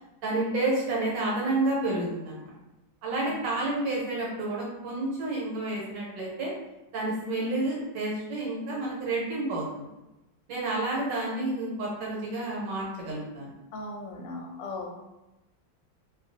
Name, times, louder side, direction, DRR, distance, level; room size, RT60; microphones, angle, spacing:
voice 1, 0.2-2.5 3.0-6.5 6.9-9.9 10.5-13.5, right 2 dB, 75° right, -4 dB, 1.4 m, -30 dB
voice 2, 13.7-15.0, left 2 dB, 75° left, 0 dB, 1.2 m, -38 dB
2.9 x 2.4 x 2.6 m, 0.97 s
omnidirectional pair, 2.0 m